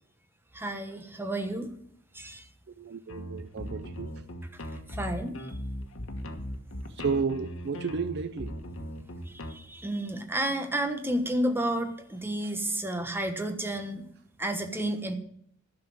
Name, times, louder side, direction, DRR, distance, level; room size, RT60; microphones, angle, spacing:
voice 1, 0.5-1.7 2.1-2.4 5.0-5.4 9.3-14.1 14.4-15.1, right 1 dB, 10° right, 1.2 m, -31 dB
voice 2, 2.7-4.2 6.9-8.6, right 5 dB, 55° right, 0.5 m, -32 dB
sound 1, 3.1-9.5, equal, 65° left, 1.4 m, -38 dB
11.5 x 6.2 x 9.4 m
head